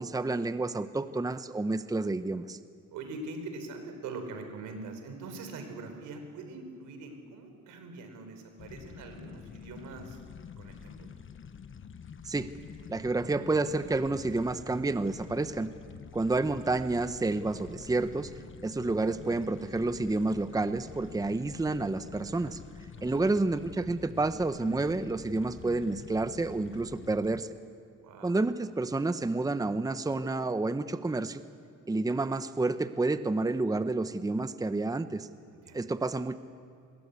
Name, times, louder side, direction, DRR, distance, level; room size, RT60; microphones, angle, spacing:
voice 1, 0.0-2.6 12.2-12.5 12.9-15.7 16.1-18.3 18.6-22.6 23.0-27.5 28.2-31.4 31.9-35.3 35.7-36.4, right 2 dB, 10° right, 12 dB, 0.9 m, -29 dB
voice 2, 2.9-10.2 10.6-11.1 22.9-23.4 28.0-28.4 35.5-35.8, right 3 dB, 90° right, 6 dB, 4.5 m, -43 dB
sound 1, 8.6-27.4, left 6 dB, 40° left, 1.2 m, -47 dB
26.5 x 21.0 x 8.3 m, 2.3 s
cardioid pair, 90°, 30 cm